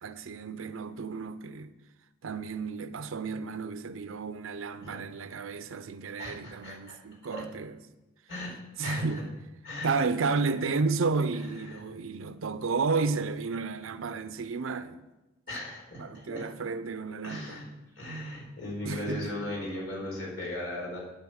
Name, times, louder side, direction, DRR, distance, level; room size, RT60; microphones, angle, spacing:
voice 1, 0.0-1.7 2.2-7.8 8.8-9.3 9.8-15.0 16.0-17.7 18.8-19.4, right 4 dB, 85° right, 0.6 m, -32 dB
voice 2, 6.2-7.0 7.3-7.4 8.3-8.5 8.8-9.2 9.6-9.9 11.7-11.8 15.5-16.5 17.2-17.6 18.0-21.0, left 1 dB, 70° left, 4.3 m, -37 dB
10.5 x 9.0 x 6.3 m
head